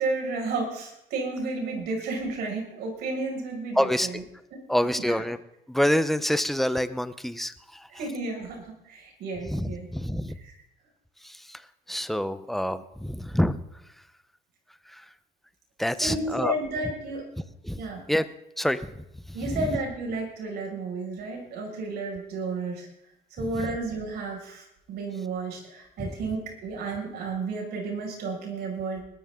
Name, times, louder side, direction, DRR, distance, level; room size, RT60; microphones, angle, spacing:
voice 1, 0.0-4.2 4.5-4.6 4.9-5.2 7.9-9.9 10.4-10.5 16.0-17.2 17.8-18.0 19.3-22.9 23.4-29.0, right 3 dB, 75° right, 0 dB, 6.1 m, -32 dB
voice 2, 3.8-4.1 4.7-5.4 5.7-7.8 9.5-10.4 11.2-11.6 11.9-13.6 15.8-16.5 17.6-17.8 18.1-18.2 18.6-18.8 19.5-19.7 23.5-23.7 26.0-26.1, equal, ahead, 13 dB, 0.8 m, -26 dB
20.5 x 13.5 x 3.8 m, 0.81 s
cardioid pair, 110°, 17 cm